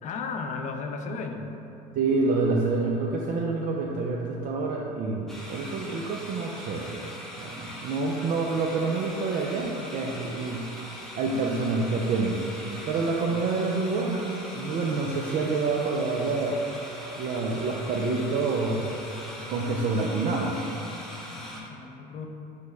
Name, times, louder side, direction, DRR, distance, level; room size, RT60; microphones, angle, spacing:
voice 1, 0.0-1.5 21.3-22.3, left 4 dB, 35° left, 4 dB, 0.4 m, -35 dB
voice 2, 2.0-7.0 7.4-10.7 11.1-12.4 12.8-14.3 14.5-16.6 17.2-19.0 19.5-20.6, right 3 dB, 45° right, -1 dB, 0.4 m, -27 dB
sound 1, 5.3-21.6, equal, ahead, 0.7 m, -41 dB
4.8 x 2.1 x 4.3 m, 3.0 s
supercardioid pair, 90°, 21 cm